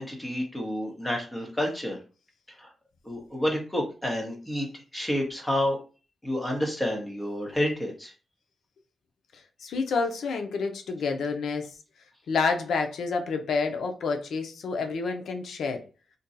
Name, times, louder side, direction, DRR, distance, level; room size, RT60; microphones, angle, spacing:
voice 1, 0.0-2.0 2.6-2.7 3.0-4.7 4.9-5.8 6.2-8.1, left 1 dB, 10° left, 0.9 m, -29 dB
voice 2, 9.3-11.7 12.3-15.8, left 4 dB, 85° left, 0.5 m, -29 dB
2.6 x 2.2 x 3.9 m
wide cardioid pair, 130°, 0 cm